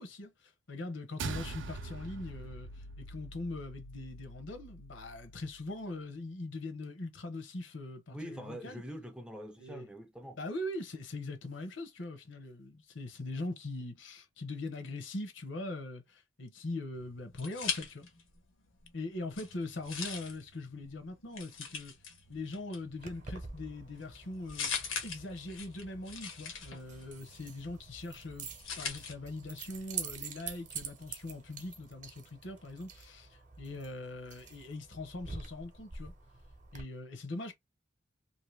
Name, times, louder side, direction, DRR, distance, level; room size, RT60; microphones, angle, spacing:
voice 1, 0.0-8.8 9.6-9.9 10.4-18.1 18.9-21.9 22.3-24.7 25.0-28.5 28.8-36.1 36.7-37.5, left 2 dB, 70° left, 0.8 m, -41 dB
sound 1, 1.2-5.8, right 3 dB, 70° right, 0.5 m, -44 dB
voice 2, 8.1-10.4, equal, 5° right, 0.4 m, -44 dB
sound 2, 16.9-18.4 18.7-29.1, left 6 dB, 90° left, 1.0 m, -42 dB
Keys jangling, 23.0-36.8, right 5 dB, 40° right, 0.8 m, -47 dB
2.7 x 2.6 x 3.1 m
head